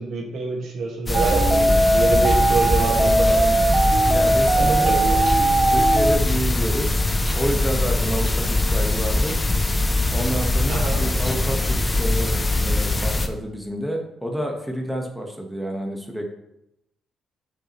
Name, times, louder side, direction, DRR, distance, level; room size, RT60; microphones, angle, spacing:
voice 1, 0.0-3.6 4.5-5.2 10.7-11.0, right 3 dB, 70° right, 0 dB, 1.7 m, -27 dB
sound 1, 1.1-13.3, left 2 dB, 20° left, 0.7 m, -22 dB
sound 2, 1.1-6.2, right 2 dB, 30° right, 0.5 m, -19 dB
voice 2, 4.1-4.9 5.7-7.0 7.3-9.4 10.1-16.3, equal, ahead, 1 dB, 1.2 m, -29 dB
8.4 x 5.3 x 3.0 m, 0.85 s
cardioid pair, 90°, 0 cm